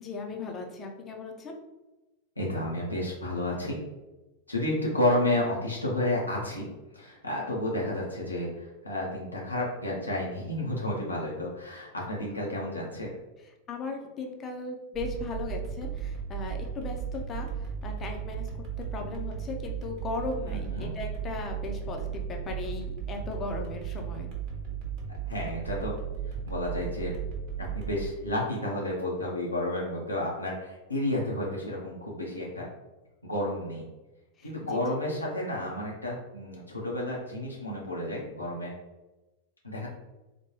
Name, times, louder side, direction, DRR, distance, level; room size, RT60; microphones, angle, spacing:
voice 1, 0.0-1.5 13.7-18.5 18.9-24.3 34.4-34.8, left 3 dB, 25° left, 2 dB, 0.6 m, -37 dB
voice 2, 2.4-3.8 4.5-6.7 6.9-13.2 20.5-20.9 25.2-25.9 26.3-27.1 27.6-32.6 33.2-33.8 34.4-38.7 39.6-39.9, left 1 dB, 85° left, -3 dB, 0.6 m, -31 dB
sound 1, 14.9-28.1, right 8 dB, 40° right, 1.0 m, -35 dB
4.0 x 2.2 x 3.0 m, 1.0 s
figure-of-eight pair, 90°, 0 cm